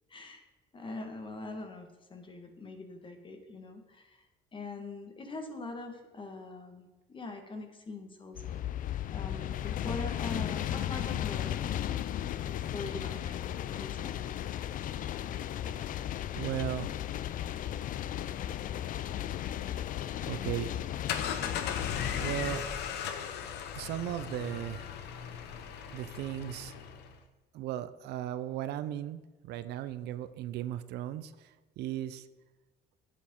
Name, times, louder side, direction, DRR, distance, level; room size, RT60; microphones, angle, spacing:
voice 1, 0.1-0.4 0.7-4.2 4.5-11.8 12.4-14.4 15.7-15.8, left 3 dB, 30° left, 6 dB, 1.5 m, -43 dB
sound 1, 8.4-22.6, left 11 dB, 55° left, 0.4 m, -35 dB
voice 2, 16.4-16.9 20.2-20.7 22.2-22.6 23.7-24.9 25.9-26.7 27.5-32.3, right 12 dB, 80° right, 13 dB, 0.6 m, -36 dB
sound 2, 20.9-27.2, left 8 dB, 80° left, 1.0 m, -37 dB
10.0 x 8.4 x 3.7 m, 1.2 s
cardioid pair, 110°, 17 cm